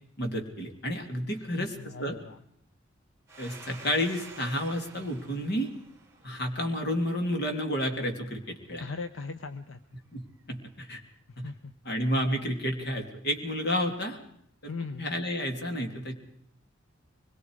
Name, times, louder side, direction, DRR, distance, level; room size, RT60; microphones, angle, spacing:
voice 1, 0.2-2.2 3.4-5.7 6.2-8.8 10.1-11.0 11.4-11.5 11.8-14.2 15.0-16.1, equal, 55° left, 4 dB, 3.1 m, -31 dB
voice 2, 1.3-2.4 8.8-9.8 11.3-11.7 14.7-15.1, left 4 dB, 80° left, 10 dB, 0.9 m, -39 dB
Domestic sounds home sounds, 3.3-7.7, right 4 dB, 15° right, 3.0 m, -50 dB
24.0 x 22.0 x 4.9 m, 0.70 s
head